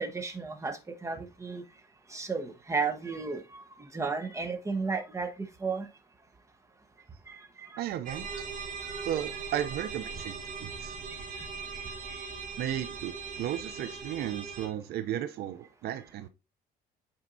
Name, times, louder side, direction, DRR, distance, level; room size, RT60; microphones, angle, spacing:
voice 1, 0.0-1.6 2.1-5.3 5.6-5.9 7.3-7.8 11.4-11.5 11.7-12.3, right 4 dB, 15° right, 1.1 m, -34 dB
voice 2, 7.8-8.3 9.0-11.0 12.6-13.1 13.4-16.3, right 11 dB, 70° right, 0.5 m, -34 dB
sound 1, 8.0-14.7, right 5 dB, 50° right, 1.8 m, -40 dB
8.8 x 4.5 x 2.6 m
cardioid pair, 110°, 17 cm